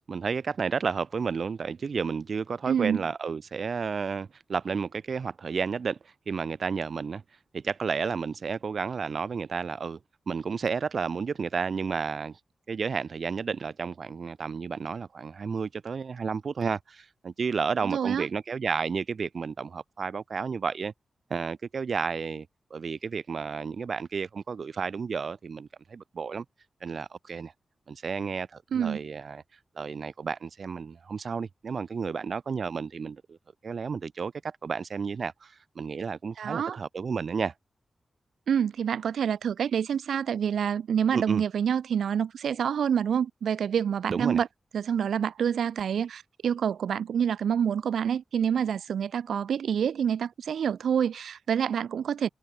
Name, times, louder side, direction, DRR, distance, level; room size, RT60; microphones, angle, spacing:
voice 1, 0.1-6.0 6.3-7.2 7.5-10.0 10.3-12.4 12.7-20.9 21.3-26.4 26.8-27.5 27.9-29.4 29.7-33.4 33.6-37.5 41.1-41.4 44.1-44.4, right 5 dB, 65° right, 1.5 m, -32 dB
voice 2, 2.7-3.0 17.8-18.3 28.7-29.0 36.4-36.8 38.5-44.5 44.7-52.3, right 8 dB, 85° right, 1.4 m, -27 dB
cardioid pair, 45°, 0 cm